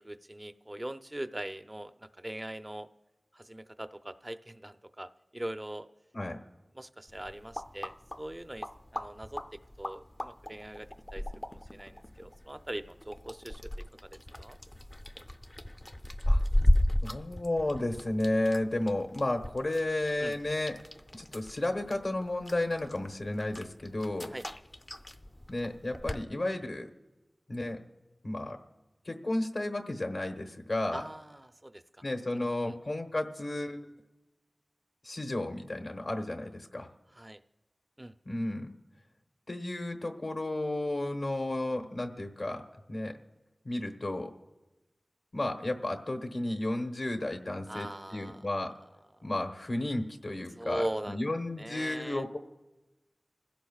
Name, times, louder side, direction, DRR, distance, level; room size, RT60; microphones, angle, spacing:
voice 1, 0.0-2.9 3.3-5.9 6.7-11.2 11.5-13.7 14.4-14.6 20.2-20.4 24.3-24.5 30.9-32.0 32.4-32.8 37.1-37.4 38.0-38.1 47.7-48.5 50.6-51.2 51.6-52.2, right 1 dB, 25° right, 10 dB, 0.6 m, -41 dB
sound 1, 7.1-26.2, left 1 dB, 30° left, 0.5 m, -35 dB
voice 2, 17.0-20.8 21.2-24.3 25.5-26.9 27.5-27.8 28.2-28.6 29.0-31.0 32.0-33.8 35.0-36.9 38.2-38.7 39.5-42.6 42.9-43.1 43.6-44.3 45.3-48.7 49.2-52.4, left 1 dB, 70° left, 4 dB, 1.1 m, -33 dB
27.0 x 16.0 x 2.4 m, 1.1 s
wide cardioid pair, 60°, 0 cm